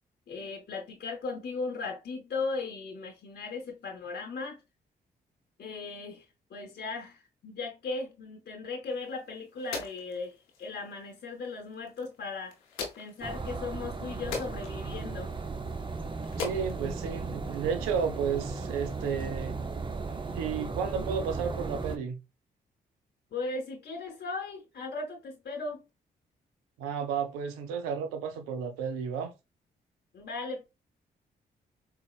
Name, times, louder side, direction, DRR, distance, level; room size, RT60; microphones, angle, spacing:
voice 1, 0.3-4.6 5.6-6.2 6.5-12.6 13.0-15.3 23.3-25.8 30.1-30.6, left 3 dB, 50° left, 0.8 m, -37 dB
sound 1, 8.9-17.9, left 5 dB, 85° left, 0.7 m, -43 dB
sound 2, 13.2-22.0, right 4 dB, 25° right, 0.6 m, -36 dB
voice 2, 16.4-19.6 20.3-22.2 26.8-29.3, right 7 dB, 85° right, 0.5 m, -32 dB
4.1 x 2.1 x 2.4 m
hypercardioid pair, 40°, 21 cm